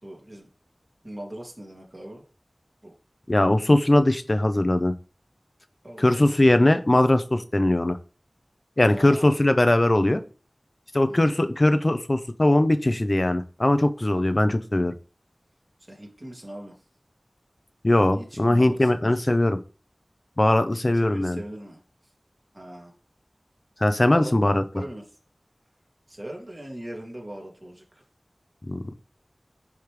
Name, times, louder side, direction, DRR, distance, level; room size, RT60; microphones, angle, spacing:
voice 1, 0.0-0.5 1.0-2.2 2.8-2.9 5.8-6.4 8.9-9.4 11.1-11.4 15.9-16.7 18.1-19.3 20.7-21.8 22.5-22.9 24.1-24.3 24.7-25.0 26.1-27.8, right 1 dB, 40° right, 0 dB, 2.2 m, -40 dB
voice 2, 3.3-4.9 6.0-8.0 8.8-10.2 10.9-14.9 17.8-19.6 20.4-21.4 23.8-24.6 28.7-28.8, left 1 dB, 40° left, 9 dB, 0.6 m, -20 dB
10.5 x 3.5 x 3.2 m, 0.36 s
wide cardioid pair, 50°, 0 cm